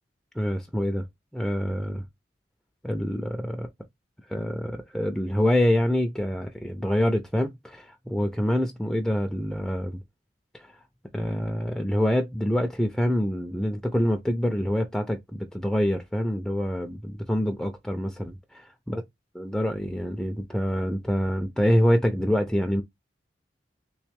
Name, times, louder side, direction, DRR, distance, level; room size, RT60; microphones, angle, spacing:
voice 1, 0.4-1.0 1.3-2.0 2.8-3.7 4.3-10.0 10.5-10.7 11.1-18.3 18.9-19.0 19.3-22.8, equal, 5° left, 0.4 m, -26 dB
3.1 x 3.0 x 3.3 m
head